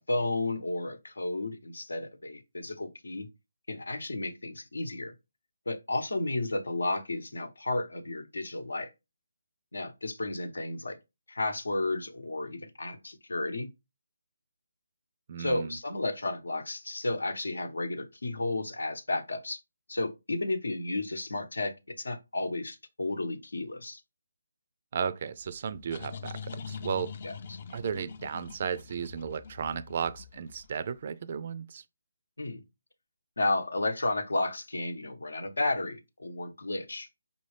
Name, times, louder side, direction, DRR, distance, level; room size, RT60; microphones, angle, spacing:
voice 1, 0.0-3.3 3.7-5.1 5.7-8.9 9.7-11.0 11.3-13.7 15.4-19.6 19.9-24.0 27.2-27.6 32.4-32.6 33.4-37.1, left 2 dB, 85° left, 0.9 m, -32 dB
voice 2, 15.3-15.8 24.9-27.1 27.7-31.8, right 7 dB, 40° right, 0.3 m, -34 dB
sound 1, 25.4-30.9, left 6 dB, 40° left, 0.5 m, -43 dB
5.2 x 2.7 x 3.2 m
figure-of-eight pair, 160°, 0 cm